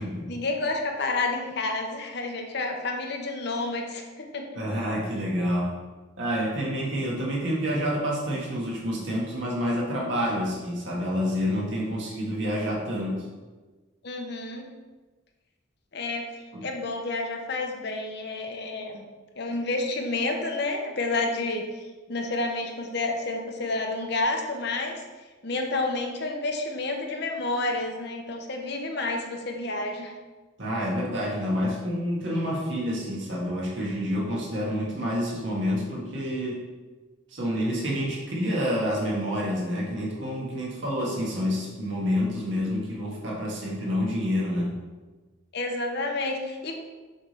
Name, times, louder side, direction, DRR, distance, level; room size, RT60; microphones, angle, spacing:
voice 1, 0.3-4.5 14.0-14.7 15.9-16.3 16.6-19.1 19.4-21.6 22.1-25.0 25.4-30.1 45.5-46.8, left 2 dB, 55° left, 2 dB, 0.8 m, -30 dB
voice 2, 4.5-5.7 6.2-13.2 16.5-16.7 30.6-36.6 37.3-44.7, equal, 65° right, -4 dB, 1.6 m, -28 dB
7.3 x 3.4 x 5.3 m, 1.3 s
head